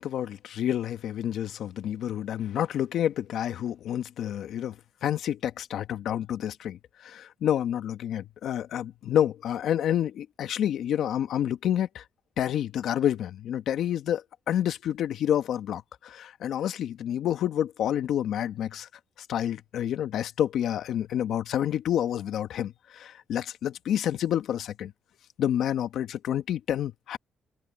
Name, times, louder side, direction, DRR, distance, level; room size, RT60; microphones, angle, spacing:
voice 1, 0.0-4.8 5.0-12.0 12.4-18.9 19.3-24.9 25.4-27.2, left 10 dB, 75° left, 1.3 m, -29 dB
open air
cardioid pair, 90°, 0 cm